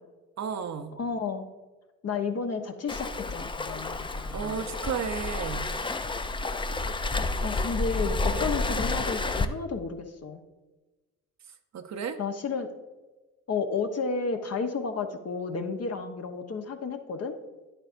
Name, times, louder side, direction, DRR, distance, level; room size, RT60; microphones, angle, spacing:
voice 1, 0.4-0.9 4.3-5.7 8.3-8.6 11.7-12.2, right 7 dB, 45° right, 6 dB, 0.8 m, -33 dB
voice 2, 1.0-1.4 2.0-4.7 7.4-10.4 12.2-12.7 13.5-17.3, left 5 dB, 40° left, 5 dB, 1.0 m, -32 dB
Waves surf, 2.9-9.4, left 3 dB, 15° left, 0.5 m, -30 dB
9.7 x 8.9 x 2.6 m, 1.2 s
hypercardioid pair, 55°, 38 cm